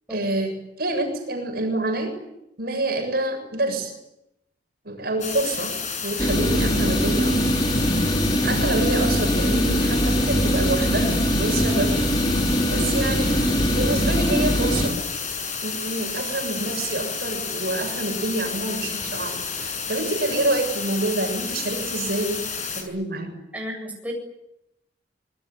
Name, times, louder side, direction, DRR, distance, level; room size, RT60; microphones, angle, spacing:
voice 1, 0.1-0.5 0.8-2.2 2.6-3.9 4.8-5.7 6.0-7.4 8.4-12.0 12.7-13.4 13.7-15.0 15.6-23.3, right 2 dB, 55° right, 4 dB, 7.4 m, -27 dB
sound 1, 5.2-22.8, left 5 dB, 40° left, 6.9 m, -31 dB
sound 2, 6.2-14.9, equal, 25° left, 5.0 m, -22 dB
voice 2, 23.5-24.1, equal, 10° right, 0 dB, 8.0 m, -33 dB
26.5 x 21.5 x 9.3 m, 0.86 s
head